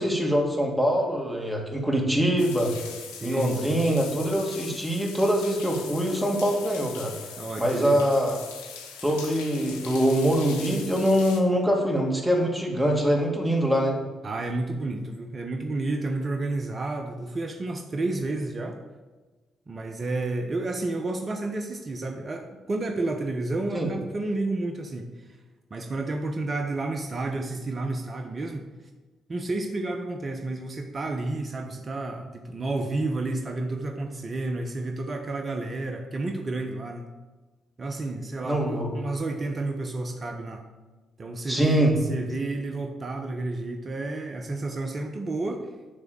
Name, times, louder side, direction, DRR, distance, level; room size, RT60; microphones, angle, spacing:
voice 1, 0.0-2.7 3.2-7.1 7.6-8.4 9.0-14.0 23.7-23.9 38.4-38.9 41.5-41.9, equal, 10° right, 1 dB, 2.3 m, -24 dB
sound 1, 2.4-11.4, left 6 dB, 85° left, 0.7 m, -41 dB
voice 2, 3.1-3.8 7.4-8.0 14.2-18.8 19.7-25.4 25.7-28.7 29.3-37.1 37.8-40.6 41.2-45.7, right 2 dB, 40° right, 3 dB, 1.0 m, -31 dB
9.9 x 3.6 x 6.9 m, 1.2 s
hypercardioid pair, 50°, 0 cm